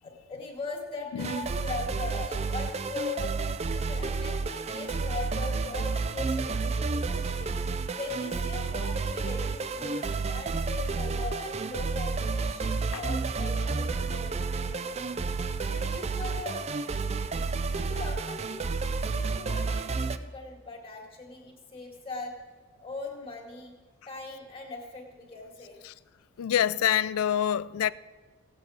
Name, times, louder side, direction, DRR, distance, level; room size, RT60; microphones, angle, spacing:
voice 1, 0.0-15.4 15.7-16.7 17.7-18.6 19.1-22.4 22.8-23.7 24.1-25.8, left 3 dB, 25° left, 2.3 m, -40 dB
sound 1, 1.2-20.2, right 4 dB, 30° right, 0.4 m, -31 dB
voice 2, 26.4-27.9, left 10 dB, 80° left, 0.4 m, -26 dB
16.5 x 8.6 x 5.0 m
head